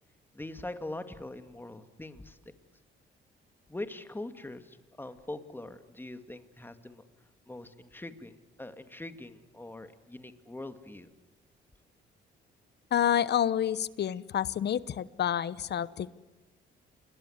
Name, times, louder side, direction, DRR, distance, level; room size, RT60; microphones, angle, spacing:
voice 1, 0.3-2.4 3.7-7.0 7.5-11.1, left 2 dB, 10° left, 9 dB, 2.3 m, -42 dB
voice 2, 12.9-16.1, left 10 dB, 60° left, 18 dB, 1.0 m, -28 dB
28.5 x 21.5 x 8.1 m, 1.1 s
cardioid pair, 90°, 20 cm